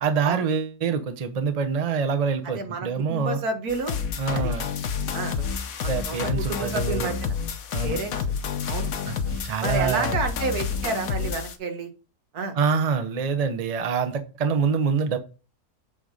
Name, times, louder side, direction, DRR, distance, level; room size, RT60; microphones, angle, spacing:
voice 1, 0.0-3.4 4.2-4.7 5.9-7.1 7.7-8.0 9.1-10.2 12.5-15.2, right 5 dB, 35° right, 8 dB, 0.7 m, -26 dB
voice 2, 2.6-4.0 4.3-4.5 5.1-5.4 5.8-7.3 7.8-8.2 8.6-8.9 9.6-11.9 12.3-12.6, right 4 dB, 75° right, 5 dB, 1.8 m, -30 dB
sound 1, 3.7-11.6, left 6 dB, 65° left, 1.3 m, -29 dB
8.6 x 3.9 x 5.0 m, 0.34 s
omnidirectional pair, 1.6 m